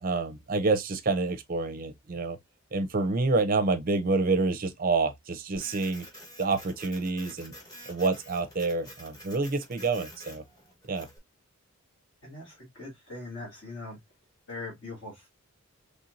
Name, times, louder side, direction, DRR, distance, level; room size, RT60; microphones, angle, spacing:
voice 1, 0.0-2.4 2.7-6.1 6.4-7.5 7.9-10.4 10.9-11.1, right 3 dB, 40° right, 0.6 m, -28 dB
Printer, 5.5-11.2, equal, 15° left, 1.2 m, -49 dB
voice 2, 12.2-14.0 14.5-15.3, left 2 dB, 55° left, 2.1 m, -41 dB
4.2 x 3.4 x 2.5 m
head